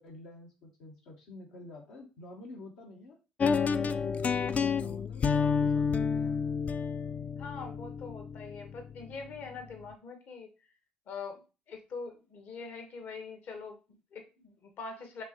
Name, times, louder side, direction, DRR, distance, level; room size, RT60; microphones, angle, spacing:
voice 1, 0.0-3.2 3.6-6.4, left 2 dB, 80° left, -2 dB, 1.0 m, -48 dB
sound 1, 3.4-9.4, left 6 dB, 40° left, 0.3 m, -30 dB
voice 2, 7.4-10.5 11.1-15.2, left 4 dB, 60° left, 4 dB, 1.2 m, -43 dB
5.2 x 3.0 x 3.0 m, 0.31 s
hypercardioid pair, 65°, 4 cm